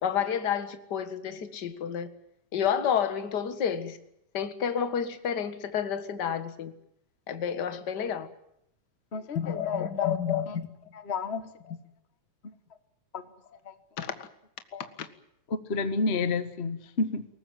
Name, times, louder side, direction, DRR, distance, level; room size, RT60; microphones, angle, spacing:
voice 1, 0.0-2.1 2.5-4.0 4.3-6.7 7.3-8.3 9.3-10.7 11.7-11.8 14.0-14.3 15.0-15.1, left 8 dB, 40° left, 1.9 m, -30 dB
voice 2, 9.1-10.1 10.5-10.6 10.9-11.5 13.1-13.2 13.6-13.7 14.7-14.9 15.5-17.3, left 4 dB, 60° left, 0.6 m, -30 dB
22.5 x 19.0 x 9.2 m
omnidirectional pair, 3.6 m